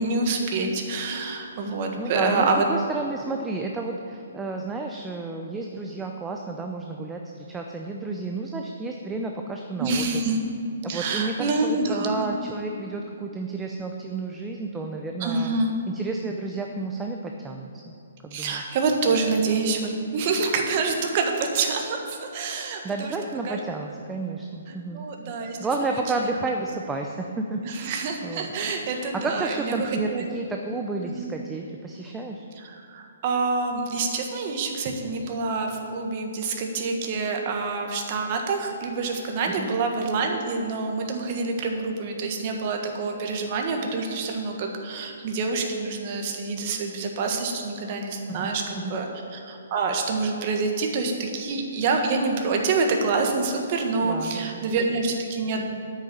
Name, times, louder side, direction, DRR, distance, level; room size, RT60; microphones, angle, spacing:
voice 1, 0.0-2.6 9.8-10.4 10.9-12.3 15.2-15.8 18.3-23.1 23.4-23.6 24.9-25.6 25.9-26.0 27.6-30.3 31.2-31.3 32.6-49.1 49.3-55.7, right 4 dB, 35° right, 3 dB, 1.5 m, -27 dB
voice 2, 2.0-10.2 10.9-15.5 15.9-17.9 18.2-18.8 22.8-25.1 25.6-28.0 28.2-28.5 29.1-32.5 39.6-39.7 48.3-49.0 54.0-54.7, right 3 dB, 10° right, 2 dB, 0.5 m, -31 dB
8.9 x 6.9 x 8.7 m, 2.7 s
hypercardioid pair, 160°, 0 cm